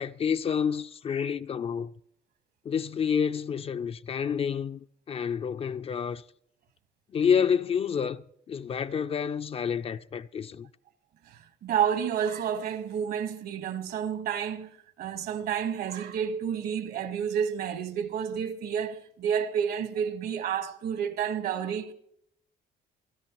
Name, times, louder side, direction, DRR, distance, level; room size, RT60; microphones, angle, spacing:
voice 1, 0.0-1.9 2.7-6.2 7.1-10.7, left 7 dB, 35° left, 0.4 m, -29 dB
voice 2, 11.2-14.7 15.0-21.9, right 8 dB, 65° right, 1.3 m, -30 dB
27.0 x 10.5 x 3.0 m
cardioid pair, 110°, 17 cm